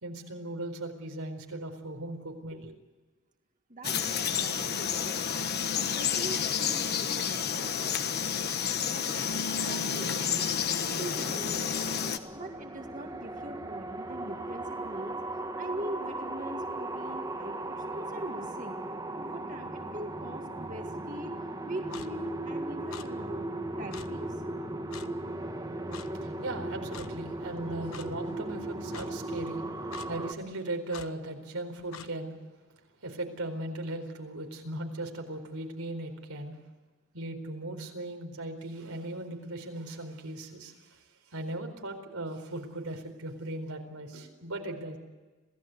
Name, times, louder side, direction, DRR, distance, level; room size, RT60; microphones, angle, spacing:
voice 1, 0.0-2.7 26.1-32.4 33.0-36.6 37.1-41.0 41.3-45.0, right 1 dB, 90° right, 4 dB, 4.4 m, -38 dB
voice 2, 3.7-5.2 5.7-8.0 8.8-9.3 9.7-10.5 10.7-12.0 12.3-15.2 15.6-18.8 19.1-21.3 21.6-24.4, right 1 dB, 35° right, 3 dB, 2.0 m, -42 dB
Frog, 3.8-12.2, left 7 dB, 50° left, 1.3 m, -30 dB
sound 1, 11.0-30.3, right 1 dB, 20° right, 1.8 m, -37 dB
Clock, 21.9-22.1 22.9-23.1 23.9-24.1 24.9-25.1 25.9-26.1 26.9-27.1 27.9-28.1 28.9-29.1 29.9-30.1 30.9-31.1 31.9-32.1, left 7 dB, 75° left, 1.1 m, -44 dB
27.0 x 17.0 x 8.0 m, 1.3 s
head